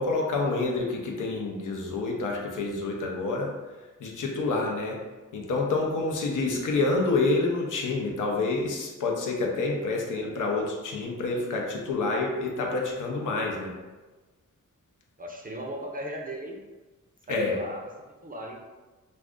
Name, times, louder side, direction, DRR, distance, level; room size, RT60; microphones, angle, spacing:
voice 1, 0.0-3.5 4.0-5.0 5.3-13.7 17.3-17.6, left 3 dB, 80° left, 0 dB, 0.6 m, -28 dB
voice 2, 15.2-16.6 17.3-17.9 18.2-18.6, equal, 30° right, 1 dB, 0.5 m, -37 dB
2.5 x 2.5 x 3.5 m, 1.2 s
cardioid pair, 75°, 31 cm